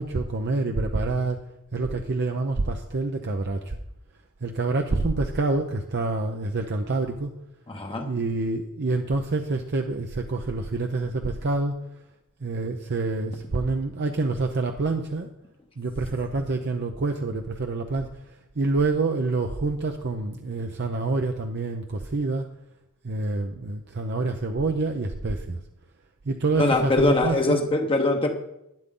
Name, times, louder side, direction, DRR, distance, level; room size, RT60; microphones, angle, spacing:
voice 1, 0.0-1.4 1.7-3.8 4.4-7.3 8.1-11.8 12.4-15.3 15.8-22.5 23.0-25.6 26.2-27.6, right 3 dB, 50° right, 4 dB, 0.7 m, -27 dB
voice 2, 7.7-8.1 26.6-28.3, left 2 dB, 25° left, 3 dB, 0.9 m, -22 dB
12.0 x 9.7 x 3.8 m, 0.86 s
head